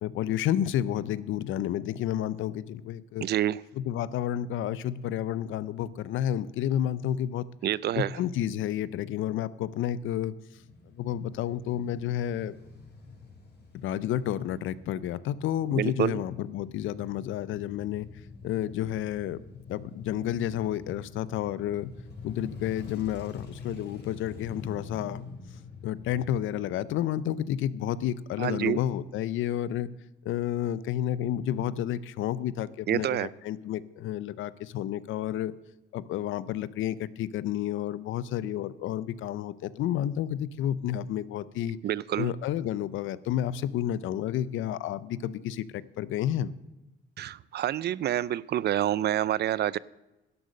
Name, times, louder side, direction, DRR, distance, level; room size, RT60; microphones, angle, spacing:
voice 1, 0.0-3.3 3.8-7.5 8.0-10.3 11.0-12.6 13.7-18.1 18.4-19.4 19.7-21.9 22.2-25.3 25.8-29.9 30.2-35.6 35.9-41.8 42.2-46.5, left 11 dB, 80° left, 18 dB, 0.5 m, -30 dB
voice 2, 3.2-3.6 7.6-8.2 15.7-16.2 28.4-28.8 32.9-33.3 41.8-42.3 47.2-49.8, right 12 dB, 55° right, 22 dB, 0.4 m, -27 dB
Male speech man speaking / Motorcycle / Idling, 10.5-26.5, left 4 dB, 55° left, 4.0 m, -46 dB
11.5 x 8.0 x 6.3 m, 1.0 s
cardioid pair, 90°, 20 cm